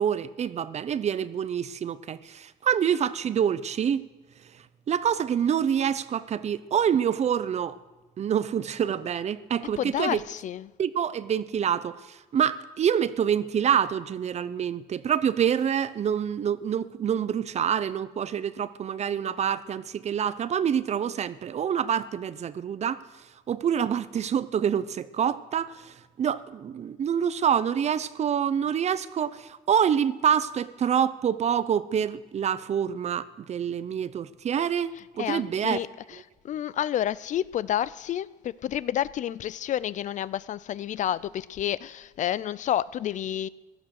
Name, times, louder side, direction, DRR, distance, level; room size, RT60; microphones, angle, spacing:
voice 1, 0.0-4.0 4.9-7.8 8.2-10.2 10.8-23.0 23.5-34.9 35.2-35.8, right 8 dB, 40° right, 16 dB, 0.6 m, -26 dB
voice 2, 9.8-10.7 35.2-36.2 36.4-43.5, left 11 dB, 45° left, 19 dB, 0.4 m, -30 dB
16.0 x 11.5 x 6.4 m, 1.2 s
cardioid pair, 110°, 17 cm